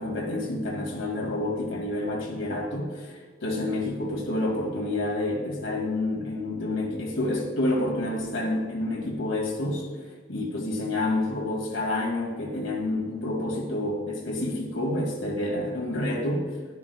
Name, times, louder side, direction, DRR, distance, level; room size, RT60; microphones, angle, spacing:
voice 1, 0.0-9.9 10.3-16.5, left 1 dB, 60° left, -1 dB, 2.7 m, -28 dB
11.5 x 11.5 x 2.4 m, 1.5 s
head